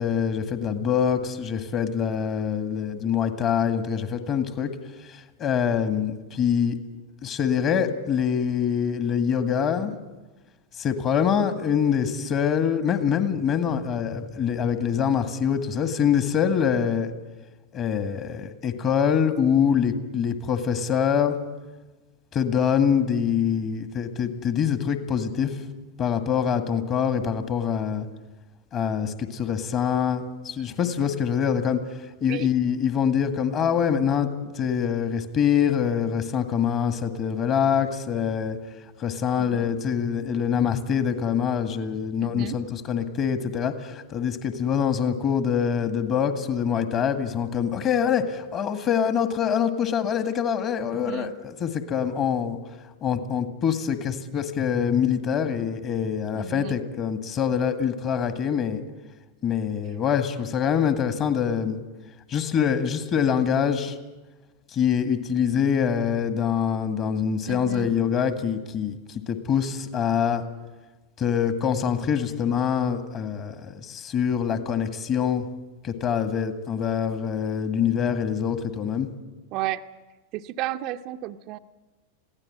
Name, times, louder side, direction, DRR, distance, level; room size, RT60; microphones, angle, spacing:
voice 1, 0.0-4.7 5.1-6.8 7.2-9.9 10.8-17.1 17.7-21.4 22.3-25.6 26.0-28.1 28.7-31.8 32.2-34.3 34.5-38.6 39.0-52.6 53.0-58.8 59.4-61.8 62.3-64.0 64.7-70.4 71.2-75.5 75.8-79.1, left 7 dB, 30° left, 9 dB, 1.9 m, -25 dB
voice 2, 39.4-39.7 42.2-42.6 51.0-51.3 56.3-56.8 67.5-67.9 79.5-79.8 80.3-81.6, right 14 dB, 40° right, 8 dB, 0.7 m, -33 dB
22.0 x 16.0 x 8.7 m, 1.2 s
figure-of-eight pair, 90°, 0 cm